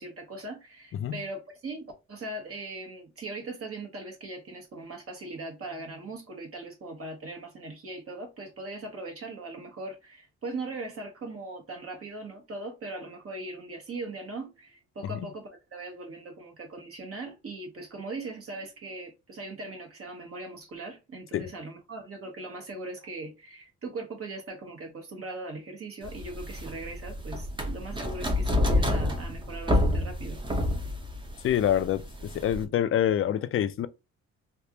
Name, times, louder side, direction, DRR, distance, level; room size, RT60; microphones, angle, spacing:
voice 1, 0.0-30.4, right 2 dB, 50° right, 1.2 m, -40 dB
sound 1, 26.0-32.6, left 1 dB, 15° right, 0.7 m, -28 dB
voice 2, 31.4-33.9, left 10 dB, 45° left, 0.4 m, -26 dB
3.3 x 2.5 x 2.8 m
cardioid pair, 90°, 30 cm